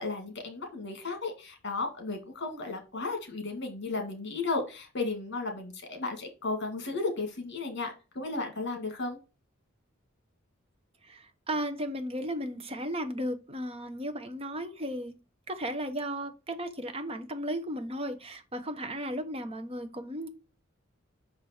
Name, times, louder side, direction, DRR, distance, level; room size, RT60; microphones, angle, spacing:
voice 1, 0.0-9.2, left 3 dB, 60° left, 4 dB, 1.9 m, -34 dB
voice 2, 11.0-15.2 15.5-20.3, equal, 30° right, 7 dB, 1.0 m, -35 dB
5.9 x 4.9 x 4.3 m, 0.30 s
head